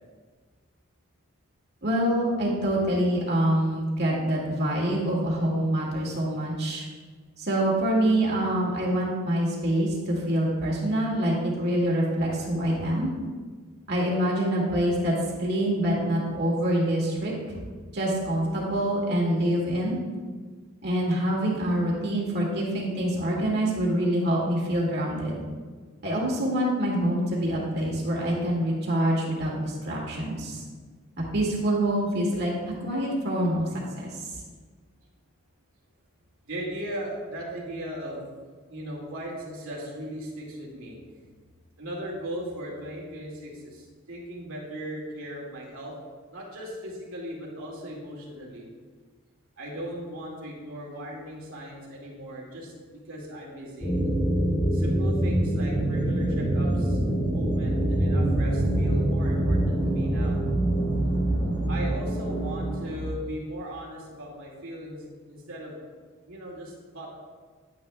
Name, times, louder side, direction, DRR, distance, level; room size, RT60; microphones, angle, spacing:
voice 1, 1.8-6.9 7.4-13.1 13.9-15.1 15.4-17.3 17.9-20.0 20.8-25.4 26.0-30.6 31.3-32.5 32.8-33.6 34.0-34.3, right 1 dB, 50° right, -3 dB, 2.1 m, -25 dB
voice 2, 36.4-38.2 38.7-41.0 41.8-45.9 46.3-48.7 49.6-53.9 54.7-57.0 57.3-60.4 61.7-65.7 66.2-67.1, equal, 75° right, -3 dB, 2.3 m, -38 dB
sound 1, 53.8-63.1, right 1 dB, 20° left, 1.4 m, -25 dB
10.5 x 9.7 x 2.3 m, 1.5 s
head